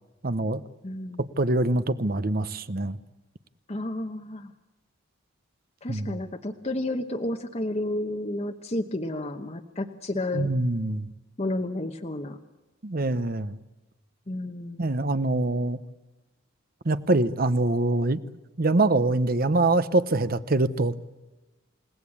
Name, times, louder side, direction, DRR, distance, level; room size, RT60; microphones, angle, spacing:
voice 1, 0.2-0.6 1.4-3.0 5.9-6.2 10.3-11.1 12.8-13.6 14.8-15.8 16.8-18.2 18.6-20.9, right 2 dB, 45° right, 13 dB, 0.9 m, -24 dB
voice 2, 0.8-1.2 3.7-4.5 5.8-10.5 11.4-12.4 14.3-14.8, left 1 dB, 30° left, 5 dB, 1.0 m, -31 dB
29.5 x 18.0 x 8.6 m, 1.1 s
head